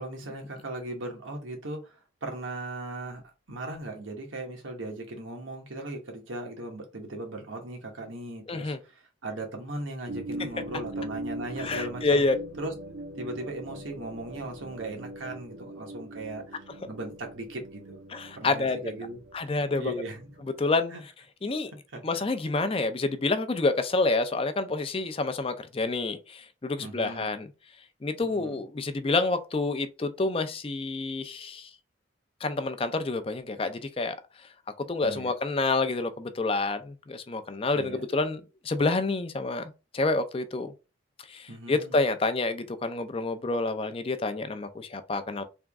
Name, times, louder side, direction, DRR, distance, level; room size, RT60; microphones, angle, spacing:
voice 1, 0.0-3.2 3.5-12.2 12.6-12.7 13.2-16.6 16.9-18.0 18.3-20.3 20.9-21.0 21.9-22.0 26.8-27.3 28.2-28.6 35.0-35.3 37.7-38.0 41.5-42.0, right 2 dB, 90° right, 1.3 m, -38 dB
voice 2, 8.5-8.8 11.6-12.4 18.1-18.8 19.3-19.9 20.6-20.9 21.4-21.7 22.0-27.5 28.0-31.7 32.4-34.2 34.8-40.7 41.3-45.4, left 3 dB, 30° left, 0.4 m, -28 dB
sound 1, 10.1-20.7, right 1 dB, 60° right, 0.6 m, -41 dB
3.5 x 3.0 x 3.5 m
head